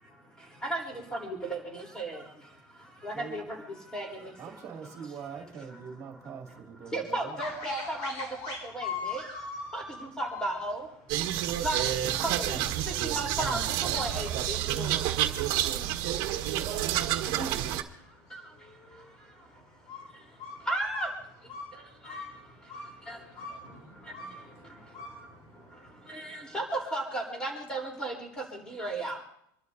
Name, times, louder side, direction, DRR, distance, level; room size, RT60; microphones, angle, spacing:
voice 1, 1.1-2.2 3.0-3.4 3.9-4.3 6.9-8.2 8.7-9.2 9.7-9.8 10.2-10.8 11.6-11.9 12.4-12.6 13.0-13.6 13.9-14.9 20.7-21.1 22.0-22.2 23.1-23.2 26.1-28.3 28.7-29.2, right 1 dB, 5° left, -1 dB, 3.8 m, -34 dB
voice 2, 3.1-3.5 4.4-7.4 25.4-25.7, right 6 dB, 25° right, 1 dB, 2.5 m, -45 dB
sound 1, 7.4-25.9, left 4 dB, 45° left, 5.4 m, -43 dB
sound 2, 11.1-17.8, right 12 dB, 50° right, 1.5 m, -29 dB
voice 3, 23.0-25.2, left 2 dB, 65° left, 0 dB, 6.4 m, -62 dB
27.5 x 12.5 x 2.7 m, 0.76 s
supercardioid pair, 155°, 12 cm